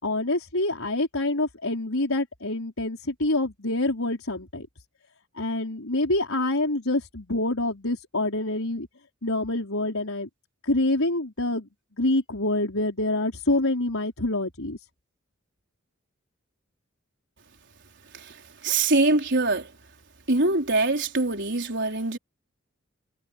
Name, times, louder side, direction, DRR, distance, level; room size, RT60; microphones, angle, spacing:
voice 1, 0.0-4.7 5.3-8.9 9.2-10.3 10.6-11.7 12.0-14.8, left 2 dB, 90° left, 5.0 m, -26 dB
voice 2, 18.6-19.7 20.3-22.2, right 2 dB, 60° right, 4.7 m, -23 dB
head